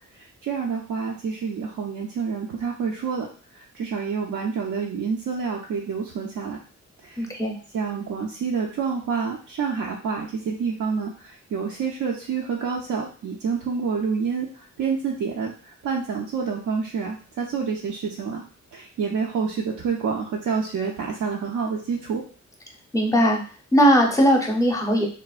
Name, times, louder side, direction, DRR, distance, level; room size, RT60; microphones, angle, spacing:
voice 1, 0.2-3.3 3.5-6.6 7.0-7.3 7.7-15.5 15.8-18.4 18.7-22.2, right 5 dB, 80° right, -2 dB, 0.5 m, -28 dB
voice 2, 7.2-7.5 22.9-23.4 23.7-25.1, equal, 10° left, 1 dB, 0.6 m, -19 dB
3.2 x 2.1 x 2.3 m, 0.41 s
wide cardioid pair, 100°, 30 cm